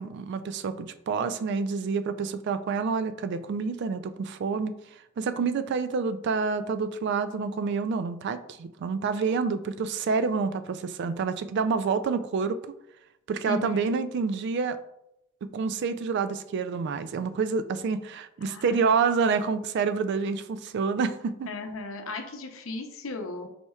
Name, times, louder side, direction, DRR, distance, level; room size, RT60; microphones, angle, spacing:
voice 1, 0.0-4.7 5.2-12.6 13.3-14.8 15.5-21.5, right 5 dB, 60° right, 12 dB, 0.3 m, -28 dB
voice 2, 13.5-14.0 18.4-18.9 21.5-23.5, left 2 dB, 80° left, 5 dB, 0.6 m, -35 dB
4.3 x 4.2 x 2.3 m, 0.82 s
head